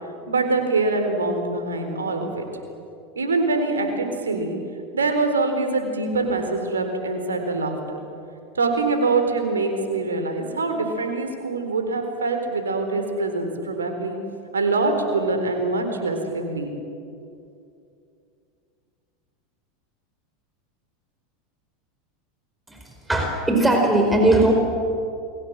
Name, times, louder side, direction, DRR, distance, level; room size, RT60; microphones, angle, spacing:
voice 1, 0.3-2.5 3.2-4.6 4.9-7.7 8.5-14.2 14.5-16.7, right 3 dB, 80° right, 6 dB, 4.1 m, -24 dB
voice 2, 23.1-24.5, right 1 dB, 10° right, 2 dB, 4.5 m, -18 dB
29.0 x 22.5 x 7.6 m, 2.5 s
figure-of-eight pair, 85°, 0 cm